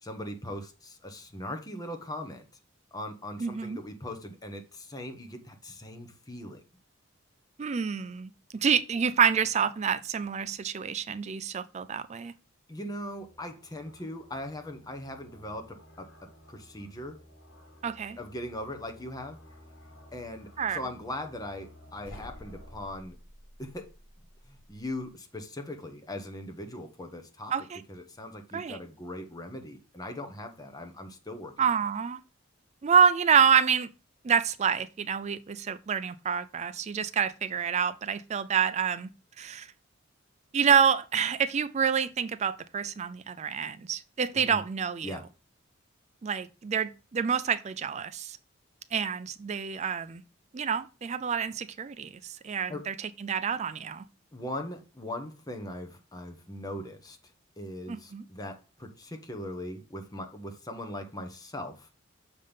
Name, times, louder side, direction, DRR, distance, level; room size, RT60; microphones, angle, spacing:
voice 1, 0.0-2.4 2.9-6.6 12.7-17.2 18.2-19.4 20.1-23.2 23.6-23.9 24.5-27.5 27.9-31.5 44.3-44.6 45.0-45.2 52.7-52.9 54.3-57.2 57.6-61.9, left 1 dB, 20° left, 1.0 m, -40 dB
voice 2, 3.4-3.8 7.6-12.3 17.8-18.2 20.6-20.8 27.5-27.8 28.5-28.8 31.6-32.2 32.8-33.9 34.2-39.1 39.4-39.7 40.5-45.2 46.2-48.4 48.9-50.2 50.5-54.0 57.9-58.2, right 7 dB, 35° right, 0.4 m, -27 dB
sound 1, 12.9-23.0, left 1 dB, 65° left, 2.1 m, -54 dB
sound 2, 22.0-25.1, equal, 45° left, 3.7 m, -51 dB
6.5 x 3.6 x 5.5 m
head